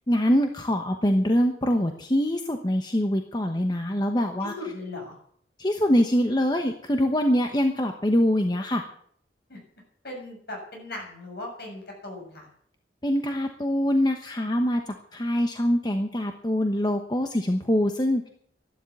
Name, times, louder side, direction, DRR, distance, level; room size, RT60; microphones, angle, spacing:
voice 1, 0.1-4.5 5.6-8.8 13.0-14.8 15.1-18.3, equal, 25° left, 5 dB, 1.1 m, -24 dB
voice 2, 4.4-5.1 9.5-9.6 10.0-12.5, left 2 dB, 60° left, 0 dB, 7.0 m, -38 dB
13.0 x 12.0 x 8.5 m, 0.64 s
head